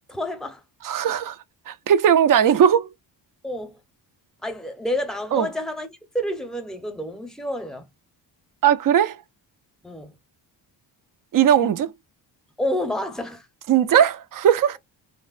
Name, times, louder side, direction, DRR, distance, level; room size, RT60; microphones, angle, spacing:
voice 1, 0.1-0.6 3.4-3.8 4.4-7.9 9.8-10.2 12.6-13.5, left 1 dB, ahead, 0.6 m, -29 dB
voice 2, 0.8-1.4 1.7-2.9 5.3-5.5 8.6-9.2 11.3-11.9 13.7-14.8, right 9 dB, 50° right, 0.4 m, -18 dB
3.3 x 2.1 x 2.3 m
cardioid pair, 110°, 45 cm